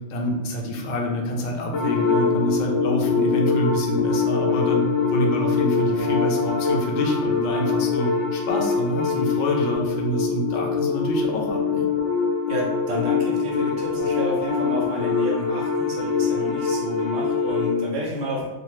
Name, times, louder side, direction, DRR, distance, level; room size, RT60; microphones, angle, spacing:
voice 1, 0.1-11.9, equal, 55° left, 0 dB, 0.5 m, -27 dB
sound 1, 1.7-17.7, left 5 dB, 80° left, 1.0 m, -23 dB
voice 2, 12.5-18.5, equal, 80° right, -3 dB, 1.1 m, -30 dB
2.8 x 2.2 x 3.1 m, 1.1 s
omnidirectional pair, 1.2 m